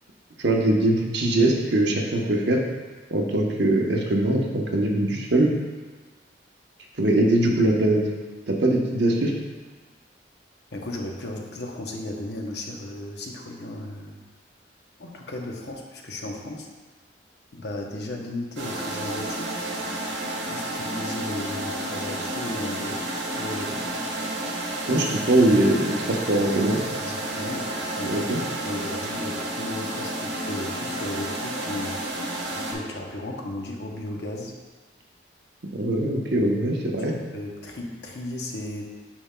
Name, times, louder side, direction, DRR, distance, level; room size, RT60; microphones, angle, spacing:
voice 1, 0.4-2.6 3.1-5.5 7.0-8.0 8.5-9.3 24.9-26.8 28.0-28.4 35.7-37.1, right 1 dB, 70° right, 0 dB, 0.9 m, -22 dB
voice 2, 10.7-14.2 15.0-16.7 17.5-19.6 20.5-23.1 23.4-23.9 27.0-28.4 28.6-32.2 32.5-34.6 37.1-38.9, left 1 dB, 65° left, 1 dB, 0.8 m, -35 dB
sound 1, 18.6-32.7, right 1 dB, 90° right, 1.3 m, -31 dB
8.6 x 5.4 x 2.2 m, 1.3 s
head